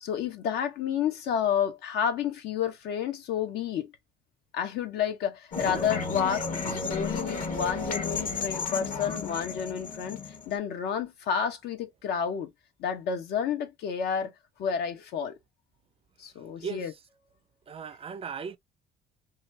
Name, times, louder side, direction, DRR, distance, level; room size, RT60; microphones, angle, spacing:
voice 1, 0.0-3.9 4.5-10.2 10.5-12.5 12.8-14.3 14.6-15.3 16.2-16.9, left 8 dB, 75° left, 0.9 m, -30 dB
sound 1, 5.5-10.6, left 4 dB, 55° left, 1.2 m, -33 dB
voice 2, 16.6-17.0 17.7-18.6, right 6 dB, 35° right, 0.4 m, -37 dB
3.0 x 2.3 x 2.6 m
cardioid pair, 110°, 17 cm